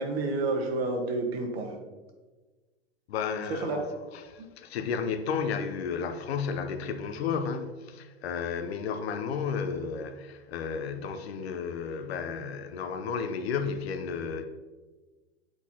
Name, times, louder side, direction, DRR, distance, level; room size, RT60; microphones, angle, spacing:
voice 1, 0.0-1.8 3.5-3.8, right 2 dB, 75° right, 1.3 m, -29 dB
voice 2, 3.1-14.4, left 6 dB, 80° left, 0.7 m, -33 dB
7.9 x 4.3 x 2.8 m
hypercardioid pair, 110°, 31 cm